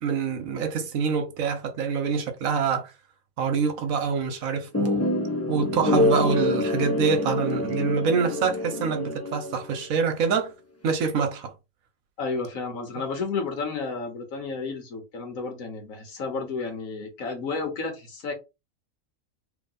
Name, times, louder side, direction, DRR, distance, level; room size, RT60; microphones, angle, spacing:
voice 1, 0.0-2.9 3.4-5.1 5.5-10.5 10.8-11.5, right 5 dB, 80° right, 1.2 m, -26 dB
sound 1, 4.7-9.9, left 2 dB, 15° left, 0.6 m, -26 dB
voice 2, 12.2-18.3, left 4 dB, 80° left, 1.6 m, -32 dB
3.1 x 3.0 x 3.9 m
omnidirectional pair, 1.4 m